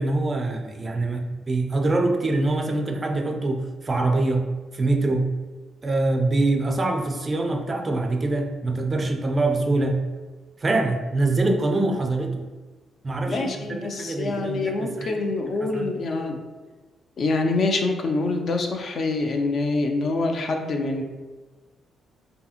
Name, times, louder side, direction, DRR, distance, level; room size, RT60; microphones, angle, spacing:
voice 1, 0.0-4.4 4.7-5.3 5.8-10.0 10.6-12.4 13.0-15.2 15.6-15.9, right 2 dB, 30° right, 3 dB, 0.3 m, -24 dB
voice 2, 13.3-16.4 17.2-21.0, left 3 dB, 50° left, 4 dB, 0.3 m, -25 dB
2.7 x 2.7 x 2.4 m, 1.3 s
cardioid pair, 105°, 0 cm